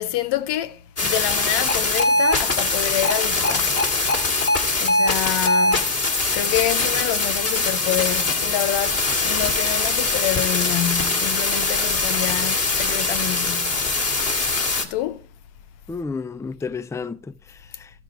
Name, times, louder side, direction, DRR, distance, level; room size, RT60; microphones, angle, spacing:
voice 1, 0.0-3.9 4.8-5.9 6.3-13.9 14.8-15.3, left 13 dB, 90° left, 0.6 m, -27 dB
sound 1, 1.0-14.9, left 3 dB, 40° left, 1.8 m, -22 dB
voice 2, 15.9-17.9, left 4 dB, 10° left, 0.3 m, -32 dB
13.5 x 5.2 x 4.6 m
supercardioid pair, 50°, 40 cm